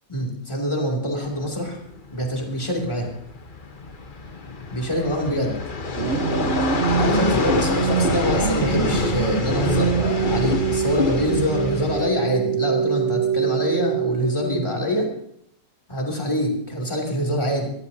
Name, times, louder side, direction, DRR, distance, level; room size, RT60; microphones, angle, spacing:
voice 1, 0.1-1.8 2.1-3.1 4.7-5.6 7.0-15.1 15.9-17.7, equal, 20° left, -1 dB, 3.0 m, -25 dB
sound 1, 1.2-12.1, left 3 dB, 40° left, 1.2 m, -27 dB
sound 2, 6.0-14.9, right 7 dB, 55° right, 1.4 m, -25 dB
23.0 x 15.0 x 2.8 m, 0.69 s
omnidirectional pair, 1.5 m